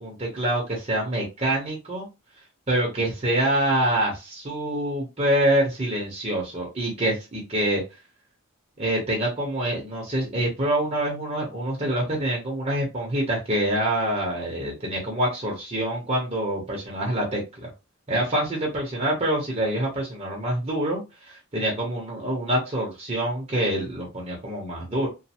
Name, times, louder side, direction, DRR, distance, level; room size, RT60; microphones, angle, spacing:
voice 1, 0.0-2.1 2.7-7.8 8.8-17.7 18.1-25.1, right 1 dB, 30° right, -2 dB, 0.8 m, -26 dB
3.0 x 2.1 x 2.8 m, 0.26 s
head